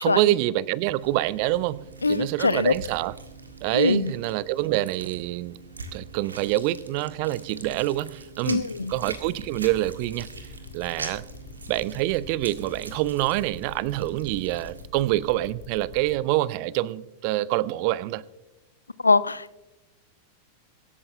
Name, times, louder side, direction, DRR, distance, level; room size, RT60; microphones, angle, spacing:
voice 1, 0.0-3.1 3.6-5.6 5.9-10.3 10.7-11.2 11.7-18.2, right 16 dB, 45° right, 20 dB, 0.4 m, -26 dB
sound 1, 1.0-14.8, right 3 dB, 75° right, 1.5 m, -43 dB
voice 2, 2.0-2.7 3.7-4.1 8.5-8.9 19.0-19.6, left 3 dB, 80° left, 18 dB, 0.4 m, -22 dB
sound 2, 8.9-16.2, left 8 dB, 50° left, 2.2 m, -44 dB
24.0 x 13.0 x 2.2 m, 1.1 s
figure-of-eight pair, 90°, 0 cm